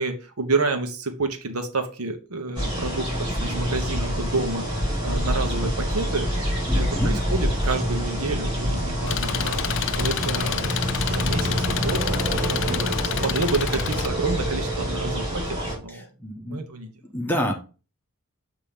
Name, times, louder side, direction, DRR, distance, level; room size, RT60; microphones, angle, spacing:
voice 1, 0.0-6.3 6.7-9.7 10.0-10.8 11.0-15.4 15.8-16.1 16.5-16.9, right 3 dB, 75° right, 6 dB, 1.1 m, -29 dB
sound 1, 2.6-15.8, equal, 20° right, 3.5 m, -26 dB
voice 2, 6.7-7.2 12.5-12.8 15.9-16.6 17.1-17.5, equal, 10° left, 2 dB, 1.1 m, -29 dB
Engine, 9.1-14.1, left 11 dB, 60° left, 0.4 m, -29 dB
7.1 x 2.9 x 5.1 m, 0.34 s
head